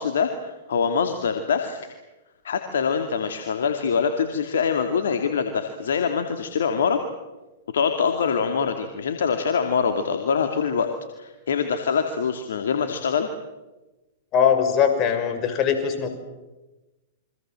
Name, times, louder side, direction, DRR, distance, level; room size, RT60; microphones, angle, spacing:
voice 1, 0.0-2.0 2.4-7.0 7.7-10.9 11.2-13.3, left 6 dB, 75° left, 6 dB, 2.4 m, -24 dB
voice 2, 14.3-16.1, left 7 dB, 35° left, 7 dB, 6.1 m, -21 dB
29.5 x 24.5 x 7.7 m, 1.1 s
hypercardioid pair, 110°, 0 cm